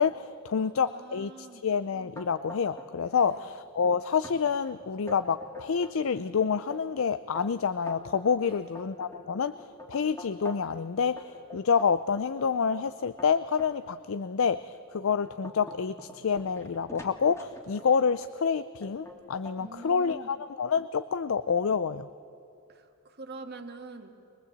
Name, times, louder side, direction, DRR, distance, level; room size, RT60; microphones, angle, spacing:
voice 1, 0.0-22.1, left 6 dB, 65° left, 14 dB, 0.5 m, -28 dB
voice 2, 0.6-1.6 3.1-3.5 8.4-8.9 19.6-20.3 22.7-24.1, right 3 dB, 50° right, 5 dB, 1.8 m, -46 dB
sound 1, 2.2-3.1 3.4-3.9 4.2-4.4 4.8-6.0 6.5-10.8 11.2-13.7 14.3-14.5 15.0-18.0 18.8-19.2 19.5-20.2, left 1 dB, 15° left, 2.3 m, -45 dB
22.5 x 21.5 x 8.1 m, 2.8 s
head